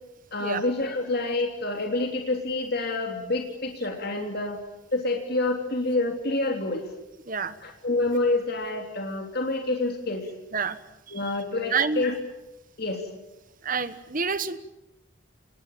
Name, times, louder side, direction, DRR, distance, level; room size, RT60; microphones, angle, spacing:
voice 1, 0.3-4.6 4.9-6.8 7.6-10.3 11.1-12.1 12.8-13.0, left 2 dB, 50° left, 3 dB, 3.3 m, -27 dB
voice 2, 11.7-12.0 13.6-14.6, right 5 dB, 40° right, 13 dB, 1.3 m, -28 dB
27.5 x 20.0 x 9.0 m, 0.93 s
head